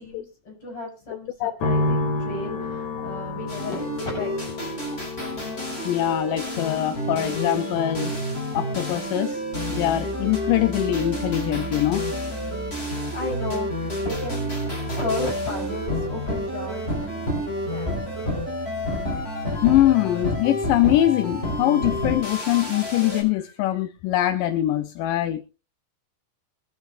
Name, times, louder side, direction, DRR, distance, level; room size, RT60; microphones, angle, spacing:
voice 1, 0.0-4.3 12.7-14.6 14.8-18.3, left 2 dB, 35° left, 7.2 m, -34 dB
sound 1, 1.6-16.9 17.1-18.0, left 2 dB, 55° left, 2.6 m, -34 dB
sound 2, 3.5-23.2, equal, 15° left, 5.1 m, -29 dB
voice 2, 5.8-8.1 8.5-9.4 9.7-12.1 19.1-25.4, left 13 dB, 75° left, 2.1 m, -23 dB
23.5 x 8.1 x 2.6 m
omnidirectional pair, 4.3 m